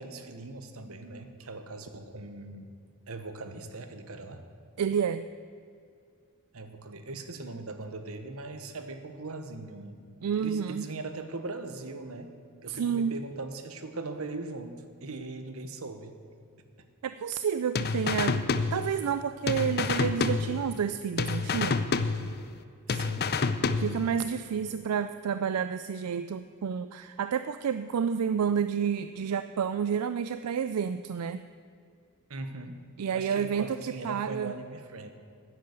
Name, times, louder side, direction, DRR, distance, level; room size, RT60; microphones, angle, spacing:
voice 1, 0.0-2.7 3.1-4.5 6.5-10.0 10.4-16.1 22.9-23.3 32.3-32.8 33.1-35.1, right 2 dB, 70° right, 8 dB, 1.1 m, -40 dB
voice 2, 4.8-5.3 10.2-10.9 12.7-13.2 17.0-18.5 18.7-21.9 23.8-31.4 33.0-33.8 34.0-34.5, right 7 dB, 85° right, 11 dB, 0.4 m, -30 dB
sound 1, 17.8-19.2 19.5-20.9 21.2-22.6 22.9-24.2, left 4 dB, 45° left, 0.6 m, -29 dB
11.0 x 9.5 x 8.1 m, 2.3 s
head